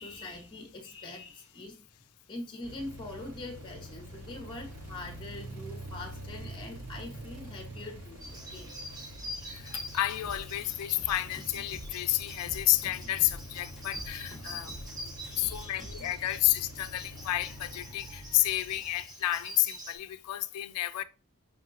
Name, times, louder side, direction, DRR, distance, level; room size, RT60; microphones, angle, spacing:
voice 1, 0.0-1.8 2.3-8.7 15.2-15.9 16.3-16.4 20.8-20.9, left 2 dB, 20° left, 0.6 m, -43 dB
sound 1, 2.6-19.8, right 1 dB, 65° right, 0.6 m, -46 dB
sound 2, 8.2-19.9, equal, 20° right, 0.7 m, -46 dB
voice 2, 9.5-15.1 15.4-21.0, left 15 dB, 75° left, 0.3 m, -30 dB
sound 3, 10.2-16.1, equal, ahead, 1.2 m, -46 dB
5.2 x 2.8 x 2.3 m
head